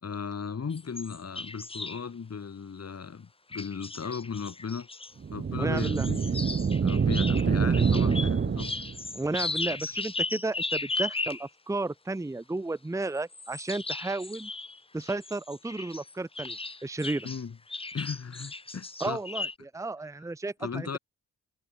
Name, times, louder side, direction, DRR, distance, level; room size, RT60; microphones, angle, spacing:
voice 1, 0.0-4.9 5.3-6.4 6.8-8.7 17.2-17.6 17.9-19.2 20.6-21.0, left 6 dB, 55° left, 4.0 m, -36 dB
sound 1, 0.7-2.0 3.5-5.1 5.8-11.5 13.2-17.4 17.7-19.5, left 3 dB, 20° left, 0.9 m, -36 dB
sound 2, 5.2-9.1, right 6 dB, 35° right, 0.9 m, -26 dB
voice 2, 5.6-6.1 9.1-14.5 14.9-16.6 16.8-17.3 19.0-20.9, right 2 dB, 10° right, 0.8 m, -33 dB
wide cardioid pair, 90°, 31 cm